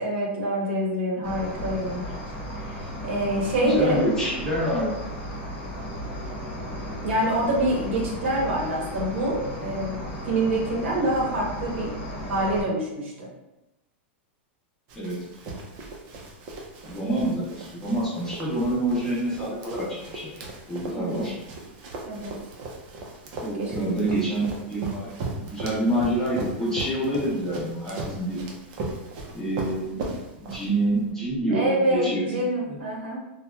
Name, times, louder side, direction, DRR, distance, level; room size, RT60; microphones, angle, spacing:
voice 1, 0.0-2.0 2.6-4.0 7.0-11.9 12.2-13.3 20.9-21.3 22.0-22.4 23.6-23.7 31.5-33.2, right 1 dB, 85° right, -2 dB, 0.8 m, -26 dB
Cricket, 1.2-12.6, equal, 35° left, 0.9 m, -35 dB
voice 2, 3.6-4.9 14.9-15.2 16.8-21.3 23.4-28.4 29.3-30.0 30.4-32.3 32.6-32.8, right 1 dB, 5° left, -7 dB, 0.7 m, -27 dB
Run, 14.9-31.0, right 2 dB, 40° right, 0.5 m, -38 dB
2.7 x 2.1 x 2.2 m, 0.95 s
supercardioid pair, 160°, 6 cm